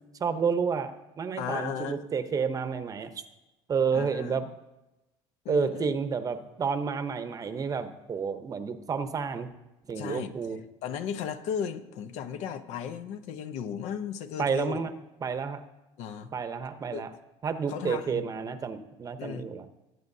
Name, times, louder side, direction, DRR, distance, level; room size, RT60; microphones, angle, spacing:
voice 1, 0.2-3.1 3.7-4.5 5.5-9.5 9.9-10.6 14.4-14.9 15.2-15.6 16.3-17.1 17.4-19.6, right 6 dB, 30° right, 9 dB, 0.8 m, -30 dB
voice 2, 1.4-2.0 3.9-4.4 5.4-5.9 10.0-10.3 10.8-14.8 16.0-16.3 16.9-17.1 17.7-18.2 19.2-19.5, left 8 dB, 75° left, 10 dB, 0.8 m, -35 dB
20.0 x 7.7 x 2.7 m, 1.0 s
cardioid pair, 120°, 12 cm